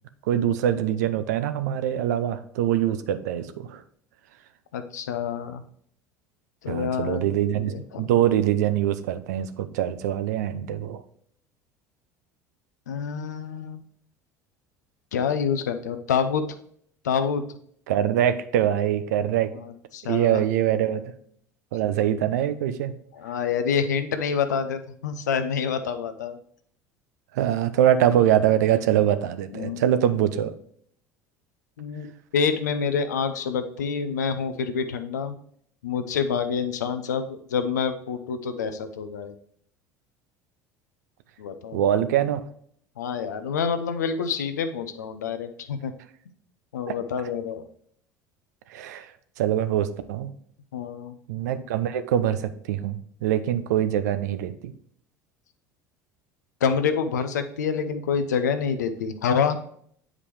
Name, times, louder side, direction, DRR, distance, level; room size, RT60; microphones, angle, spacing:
voice 1, 0.3-3.8 6.7-11.0 17.9-19.5 20.0-21.1 21.7-22.9 27.3-30.5 41.7-42.4 46.9-47.0 48.7-49.1 49.4-50.3 51.3-54.7, right 11 dB, 75° right, 12 dB, 0.6 m, -24 dB
voice 2, 4.7-5.6 6.6-8.1 12.9-13.8 15.1-16.4 17.0-17.4 19.6-20.4 23.1-26.4 29.5-29.9 31.8-32.1 32.3-35.3 35.8-39.3 41.4-41.8 43.0-45.9 46.7-47.6 50.7-51.1 56.6-59.6, left 6 dB, 80° left, 9 dB, 0.7 m, -27 dB
8.3 x 4.9 x 3.2 m, 0.63 s
hypercardioid pair, 70°, 9 cm